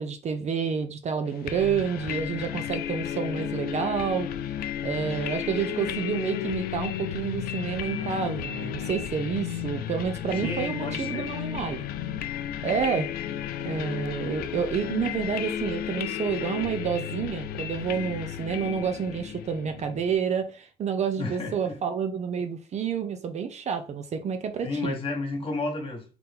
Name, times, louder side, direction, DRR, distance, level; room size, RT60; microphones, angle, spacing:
voice 1, 0.0-4.3 4.8-11.9 12.6-13.1 13.6-25.0, right 6 dB, 40° right, 0.6 m, -29 dB
sound 1, 1.5-20.1, left 10 dB, 65° left, 0.4 m, -33 dB
voice 2, 10.4-11.3 21.2-21.8 24.6-26.0, left 2 dB, 30° left, 1.5 m, -32 dB
3.7 x 2.9 x 3.6 m
cardioid pair, 110°, 17 cm